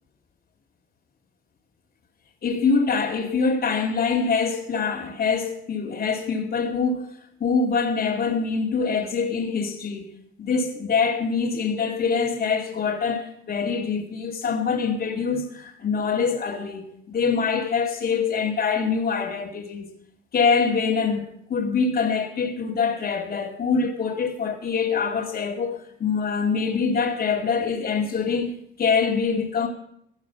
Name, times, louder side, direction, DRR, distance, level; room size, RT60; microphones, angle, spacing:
voice 1, 2.4-19.9 20.3-21.2 21.5-28.5 28.8-29.7, left 5 dB, 50° left, 2.3 m, -24 dB
17.0 x 10.5 x 5.8 m
cardioid pair, 90°, 20 cm